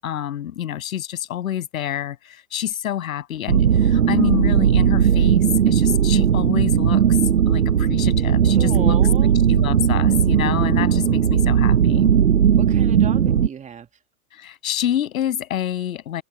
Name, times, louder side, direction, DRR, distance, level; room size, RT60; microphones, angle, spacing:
voice 1, 0.0-7.0 7.5-12.1 14.3-16.2, left 10 dB, 70° left, 7.7 m, -27 dB
sound 1, 3.5-13.5, right 8 dB, 85° right, 1.6 m, -17 dB
voice 2, 8.6-9.4 12.6-13.9, right 7 dB, 15° right, 2.1 m, -33 dB
hypercardioid pair, 120°, 44 cm